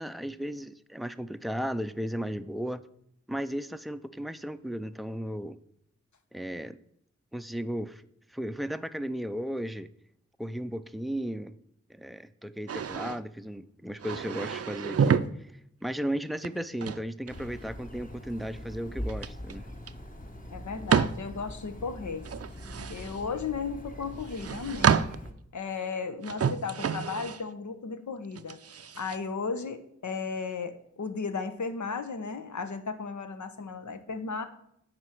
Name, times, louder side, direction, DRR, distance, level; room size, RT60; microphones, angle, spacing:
voice 1, 0.0-2.8 3.3-5.6 6.3-6.8 7.3-8.0 8.3-9.9 10.4-11.6 11.9-15.2 15.8-19.7, equal, ahead, 11 dB, 0.5 m, -35 dB
sound 1, 12.7-13.2 14.0-15.3 16.4-17.7 19.1-19.5 19.9-20.0 20.9-21.2 22.2-23.2 24.2-25.3 26.2-27.4 28.4-29.2, right 7 dB, 55° right, 0.5 m, -28 dB
sound 2, 17.3-25.3, equal, 25° left, 1.3 m, -42 dB
voice 2, 20.5-22.3 22.9-25.1 25.5-28.6 28.9-34.4, left 5 dB, 75° left, 9 dB, 1.0 m, -35 dB
7.9 x 5.1 x 5.9 m, 0.72 s
cardioid pair, 45°, 30 cm